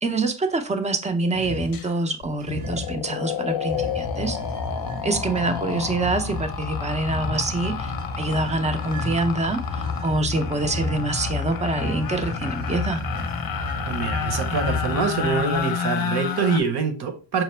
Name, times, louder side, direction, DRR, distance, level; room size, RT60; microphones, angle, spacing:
voice 1, 0.0-4.4 5.0-13.0, right 2 dB, 15° right, 0.5 m, -26 dB
sound 1, 1.3-1.8 2.4-3.0 3.6-15.6, left 2 dB, 80° right, 2.3 m, -31 dB
sound 2, 1.7-1.9 2.2-16.6, left 8 dB, 45° left, 0.6 m, -31 dB
voice 2, 13.9-17.4, right 5 dB, 55° right, 1.0 m, -25 dB
5.8 x 2.0 x 3.2 m
cardioid pair, 110°, 48 cm